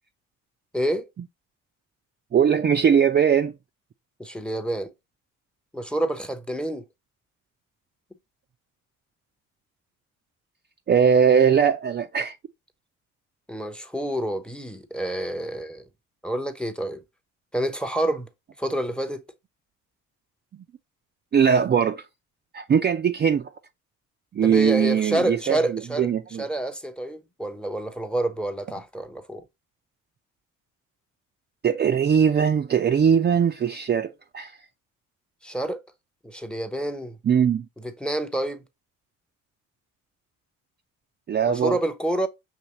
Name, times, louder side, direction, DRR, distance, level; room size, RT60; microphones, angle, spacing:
voice 1, 0.7-1.1 4.2-4.9 5.7-6.8 13.5-15.8 16.2-17.0 17.5-18.3 18.6-19.2 24.4-26.1 26.4-29.4 35.4-35.8 36.2-37.2 38.0-38.6 41.5-42.3, right 1 dB, 5° left, 0.7 m, -28 dB
voice 2, 2.3-3.5 10.9-12.4 21.3-22.0 22.5-23.5 24.3-26.5 31.6-34.5 37.2-37.7 41.3-41.8, right 7 dB, 30° right, 0.4 m, -20 dB
5.7 x 3.0 x 2.9 m
hypercardioid pair, 60°, 36 cm